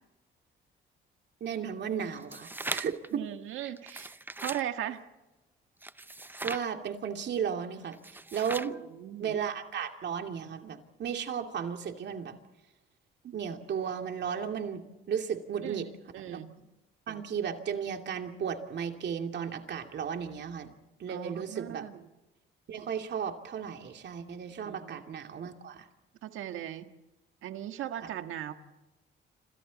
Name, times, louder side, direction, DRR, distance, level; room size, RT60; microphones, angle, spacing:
voice 1, 1.4-3.2 3.6-3.7 6.4-8.0 8.3-8.8 9.2-12.4 13.2-14.8 15.1-15.9 16.2-16.4 17.1-20.7 21.0-21.9 22.7-25.8, right 7 dB, 60° right, 4 dB, 2.6 m, -34 dB
sound 1, 2.1-3.1 3.8-4.6 5.8-6.7 7.9-8.8, right 2 dB, 10° right, 0.7 m, -39 dB
voice 2, 3.1-4.1 4.4-5.0 8.9-9.4 15.6-16.6 21.1-22.0 24.6-25.0 26.2-26.9 27.4-28.5, right 11 dB, 85° right, 7 dB, 1.7 m, -38 dB
27.5 x 27.5 x 4.2 m, 1.0 s
cardioid pair, 90°, 20 cm